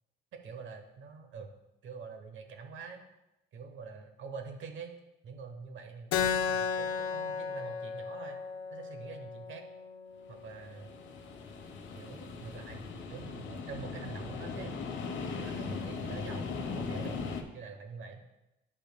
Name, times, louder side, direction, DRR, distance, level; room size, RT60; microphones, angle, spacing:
voice 1, 0.3-1.5 1.8-3.0 3.5-4.9 5.2-8.4 8.7-9.6 10.3-10.9 12.0-12.8 13.1-14.7 15.3-17.2 17.5-18.2, right 5 dB, 75° right, 6 dB, 1.1 m, -45 dB
Keyboard (musical), 6.1-11.2, left 6 dB, 90° left, 0.5 m, -35 dB
sound 1, 10.4-17.4, left 4 dB, 70° left, 0.9 m, -39 dB
11.0 x 5.4 x 2.3 m, 0.92 s
cardioid pair, 90°, 20 cm